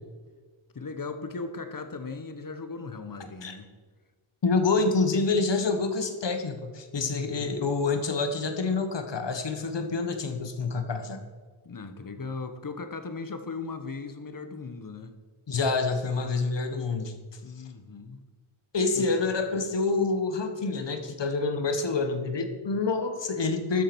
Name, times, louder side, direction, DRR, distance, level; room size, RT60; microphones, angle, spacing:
voice 1, 0.7-3.7 6.9-7.6 11.6-15.1 17.4-18.2 18.9-19.1, left 4 dB, 40° left, 9 dB, 1.3 m, -38 dB
voice 2, 4.4-11.2 15.5-17.1 18.7-23.8, left 4 dB, 55° left, 7 dB, 1.6 m, -27 dB
12.5 x 7.6 x 6.2 m, 1.4 s
wide cardioid pair, 95°, 50 cm